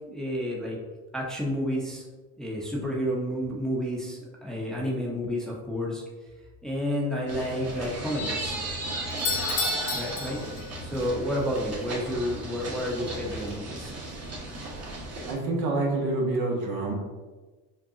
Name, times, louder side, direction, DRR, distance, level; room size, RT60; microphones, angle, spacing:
voice 1, 0.1-0.8 1.1-2.0 2.4-6.0 6.6-8.6 9.9-10.4 10.8-13.9, equal, ahead, -3 dB, 0.7 m, -30 dB
sound 1, 7.3-15.3, right 2 dB, 40° right, 1.4 m, -34 dB
Doorbell, 9.1-11.1, left 8 dB, 85° left, 0.7 m, -33 dB
voice 2, 15.3-16.9, right 2 dB, 65° right, -1 dB, 1.1 m, -27 dB
5.3 x 2.3 x 2.7 m, 1.3 s
supercardioid pair, 95°, 39 cm